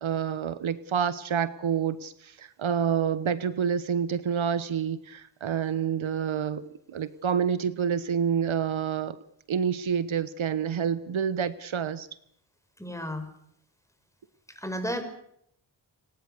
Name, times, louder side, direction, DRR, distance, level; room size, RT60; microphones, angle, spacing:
voice 1, 0.0-9.2 9.5-12.1, right 7 dB, 80° right, 14 dB, 1.2 m, -28 dB
voice 2, 12.8-13.3 14.6-15.0, equal, 5° left, 7 dB, 5.4 m, -32 dB
29.5 x 18.5 x 6.8 m, 0.72 s
cardioid pair, 70°, 47 cm